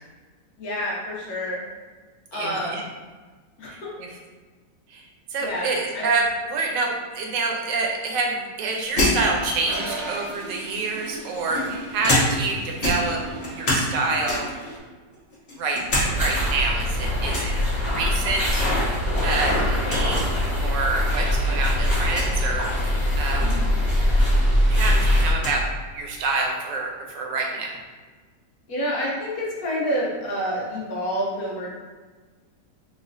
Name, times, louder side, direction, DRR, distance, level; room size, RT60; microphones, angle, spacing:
voice 1, 0.6-1.6 2.3-2.8 3.6-3.9 5.4-6.1 23.4-23.7 28.7-31.7, equal, 60° left, -4 dB, 1.2 m, -28 dB
voice 2, 2.3-2.8 3.7-4.1 4.9-5.0 5.3-14.5 15.6-15.8 16.2-17.5 17.9-18.6 19.2-23.6 24.7-25.7 25.9-27.7, right 3 dB, 85° right, 0 dB, 1.3 m, -27 dB
sound 1, 9.0-10.1 10.9-12.5 12.8-13.9 14.2-14.6 15.1-16.1 16.4-16.5 17.3-17.6 19.0-19.3 19.6-19.7 19.9-20.1 20.9-21.0 22.0-22.3 24.0-24.1 24.4-25.6, left 1 dB, 45° left, 1.2 m, -26 dB
Toilet flush, 9.6-14.8, right 3 dB, 65° right, 0.9 m, -37 dB
sound 2, 15.9-25.3, left 1 dB, 20° left, 1.1 m, -22 dB
4.1 x 3.1 x 2.6 m, 1.3 s
omnidirectional pair, 1.9 m